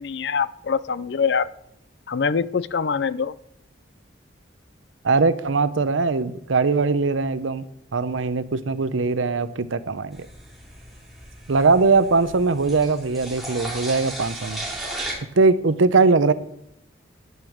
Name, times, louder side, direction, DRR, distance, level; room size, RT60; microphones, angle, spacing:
voice 1, 0.0-1.5 2.1-3.3, left 6 dB, 60° left, 17 dB, 0.5 m, -24 dB
voice 2, 5.0-7.6 7.9-10.3 11.5-14.6 15.4-16.3, right 4 dB, 85° right, 14 dB, 0.7 m, -20 dB
sound 1, 10.1-15.1, right 1 dB, ahead, 2.8 m, -35 dB
11.0 x 9.0 x 6.3 m, 0.76 s
head